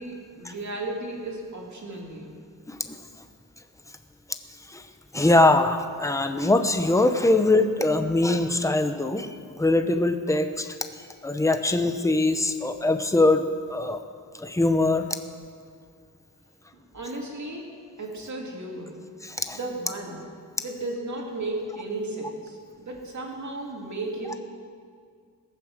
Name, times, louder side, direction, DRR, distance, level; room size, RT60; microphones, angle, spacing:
voice 1, 0.0-2.3 16.9-19.0 19.5-20.3 20.6-24.4, right 2 dB, 55° right, 0 dB, 2.4 m, -34 dB
voice 2, 5.1-10.8 11.2-13.4 13.7-14.0 14.4-15.1 19.2-19.6, left 2 dB, 10° left, 7 dB, 0.7 m, -22 dB
21.0 x 7.1 x 6.5 m, 2.2 s
wide cardioid pair, 150°, 34 cm